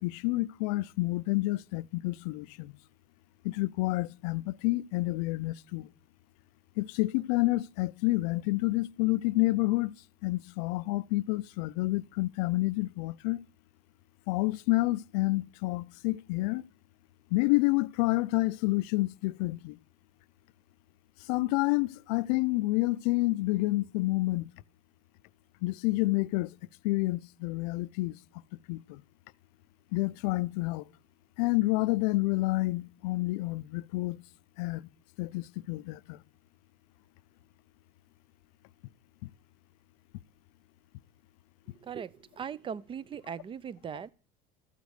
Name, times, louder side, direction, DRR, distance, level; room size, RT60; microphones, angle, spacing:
voice 1, 0.0-2.7 3.4-5.9 6.8-9.9 10.2-13.4 14.3-16.6 17.3-19.8 21.3-24.5 25.6-26.5 26.8-28.2 28.7-29.0 29.9-30.8 31.4-34.2 34.6-34.9 35.2-36.2 39.2-39.3, left 21 dB, 75° left, 0.4 m, -29 dB
voice 2, 41.7-44.1, right 7 dB, 25° right, 0.4 m, -39 dB
13.5 x 5.0 x 7.9 m
supercardioid pair, 110°, 20 cm